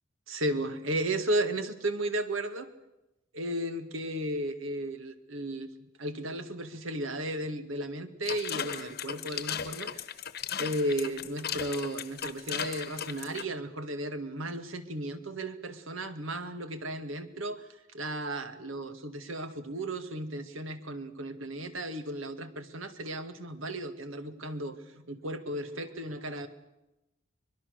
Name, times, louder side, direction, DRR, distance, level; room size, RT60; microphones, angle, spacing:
voice 1, 0.3-2.7 3.3-5.7 6.0-10.0 10.6-26.5, right 1 dB, 90° right, 9 dB, 2.0 m, -34 dB
sound 1, 8.2-13.4, left 8 dB, 55° left, 1.1 m, -36 dB
24.5 x 21.5 x 6.6 m, 0.93 s
head